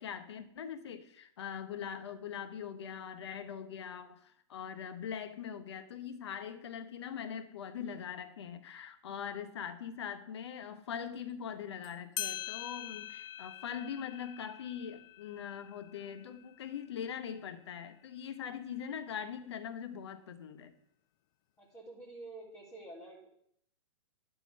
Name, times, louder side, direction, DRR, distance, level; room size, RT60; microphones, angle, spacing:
voice 1, 0.0-20.7, left 8 dB, 65° left, 10 dB, 1.0 m, -42 dB
sound 1, 11.8-11.9 12.2-17.3, left 11 dB, 45° left, 0.8 m, -44 dB
voice 2, 21.6-23.3, right 2 dB, 15° left, -8 dB, 3.6 m, -49 dB
11.5 x 6.1 x 5.3 m, 0.69 s
figure-of-eight pair, 110°, 15 cm